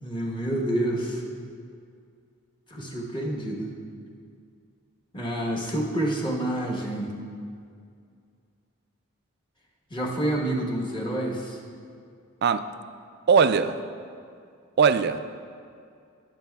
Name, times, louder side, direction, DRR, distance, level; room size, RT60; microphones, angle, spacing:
voice 1, 0.0-1.2 2.7-3.7 5.1-7.1 9.9-11.6, right 1 dB, 20° left, -3 dB, 1.1 m, -28 dB
voice 2, 13.3-13.8 14.8-15.2, right 6 dB, 45° right, 12 dB, 0.3 m, -20 dB
18.0 x 7.5 x 2.3 m, 2.3 s
head